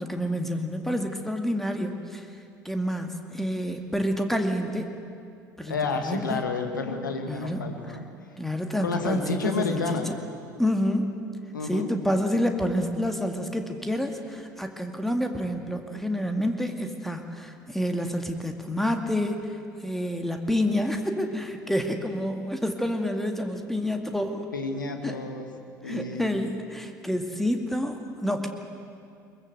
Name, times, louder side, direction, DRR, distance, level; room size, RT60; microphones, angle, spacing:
voice 1, 0.0-2.3 2.6-4.9 5.6-6.4 7.3-7.6 8.4-10.1 10.6-11.1 11.7-19.6 19.8-24.5 25.0-25.2 25.8-28.5, equal, 5° left, 5 dB, 2.1 m, -28 dB
voice 2, 5.7-8.1 8.8-10.1 11.5-11.9 24.5-25.5 25.8-26.4, left 4 dB, 80° left, 5 dB, 1.9 m, -30 dB
22.5 x 21.5 x 8.0 m, 2.4 s
figure-of-eight pair, 65°, 10 cm